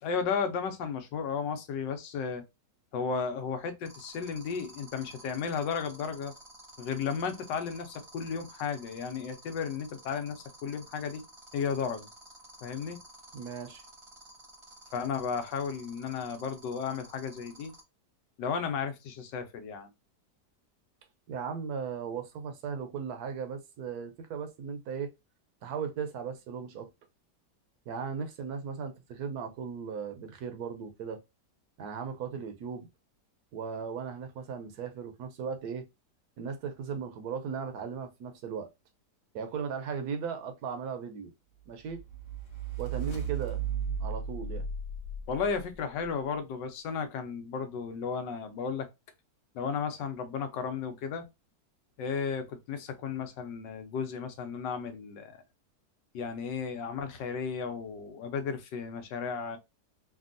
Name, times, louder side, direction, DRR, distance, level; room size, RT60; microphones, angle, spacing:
voice 1, 0.0-2.4 2.9-6.3 6.8-11.2 11.5-12.1 12.6-13.0 14.9-17.7 18.4-19.9 45.3-48.9 49.5-51.3 52.0-55.4 56.1-59.6, left 6 dB, 90° left, 1.4 m, -34 dB
sound 1, 3.8-17.8, right 2 dB, 25° right, 0.7 m, -52 dB
voice 2, 13.3-13.8 21.3-25.1 25.6-26.9 27.9-31.2 31.8-32.9 33.5-35.8 36.4-38.7 39.3-41.3 41.7-42.0 42.8-43.7 44.0-44.6, right 6 dB, 70° right, 1.1 m, -37 dB
sound 2, 41.9-46.1, right 6 dB, 50° left, 1.1 m, -35 dB
3.4 x 2.3 x 2.5 m
omnidirectional pair, 1.9 m